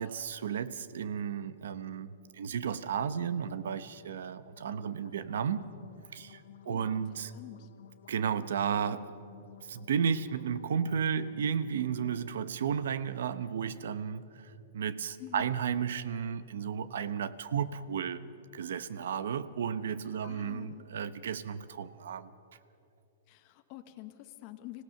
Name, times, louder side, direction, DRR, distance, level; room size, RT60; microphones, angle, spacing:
voice 1, 0.0-5.7 6.1-7.3 8.1-9.1 9.6-18.2 18.5-22.3, right 7 dB, 75° right, 14 dB, 0.9 m, -33 dB
sound 1, 4.4-12.4, left 11 dB, 80° left, 1.0 m, -55 dB
voice 2, 6.7-7.1 7.3-7.7 15.2-15.5 20.2-20.8 23.3-24.8, left 15 dB, 35° left, 6 dB, 1.2 m, -46 dB
25.5 x 17.0 x 6.6 m, 2.7 s
hypercardioid pair, 160°, 0 cm